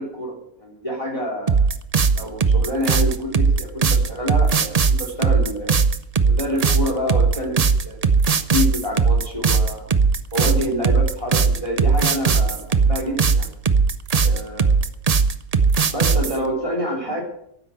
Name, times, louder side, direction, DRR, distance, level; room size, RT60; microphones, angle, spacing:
voice 1, 0.0-1.6 2.1-5.8 6.2-8.0 8.5-9.9 10.3-13.5 14.2-14.7 15.9-17.2, equal, 20° left, 0 dB, 3.6 m, -27 dB
sound 1, 1.5-16.4, right 5 dB, 40° right, 0.6 m, -18 dB
12.0 x 10.0 x 7.6 m, 0.70 s
omnidirectional pair, 1.5 m